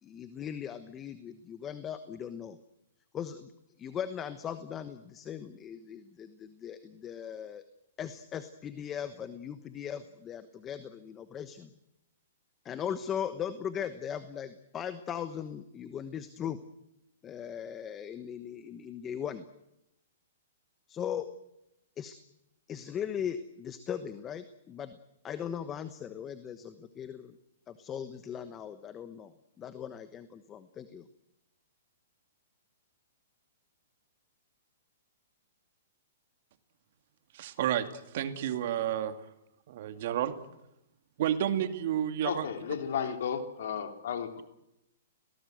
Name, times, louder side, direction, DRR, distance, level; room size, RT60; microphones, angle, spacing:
voice 1, 0.0-2.6 3.1-3.5 3.8-7.6 8.0-11.7 12.6-16.6 17.2-19.4 20.9-21.3 22.0-22.2 22.7-25.0 25.2-27.4 27.7-29.3 29.6-31.1, left 8 dB, 20° left, 11 dB, 1.1 m, -39 dB
voice 2, 37.3-37.9 38.1-39.2 39.7-40.3 41.2-42.5, right 11 dB, 55° right, 9 dB, 2.3 m, -30 dB
voice 3, 42.2-44.4, left 7 dB, 65° left, 6 dB, 3.3 m, -33 dB
29.5 x 18.5 x 7.9 m, 0.87 s
hypercardioid pair, 145°, 0 cm